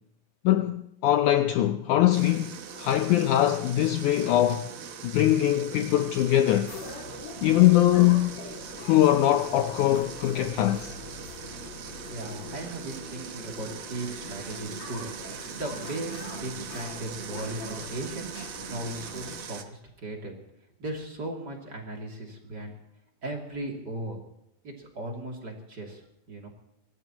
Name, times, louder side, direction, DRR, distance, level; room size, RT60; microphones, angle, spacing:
voice 1, 0.4-4.7 5.0-6.7 7.4-8.3 8.8-10.9, left 13 dB, 75° left, 1.9 m, -22 dB
sound 1, 2.1-19.6, right 7 dB, 75° right, 1.2 m, -41 dB
sound 2, 6.7-19.4, left 5 dB, 50° left, 3.3 m, -44 dB
voice 2, 12.1-20.4 20.8-22.7 23.2-24.2 24.6-26.0 26.3-26.5, right 1 dB, 30° right, 3.0 m, -37 dB
24.5 x 18.5 x 3.0 m
omnidirectional pair, 4.1 m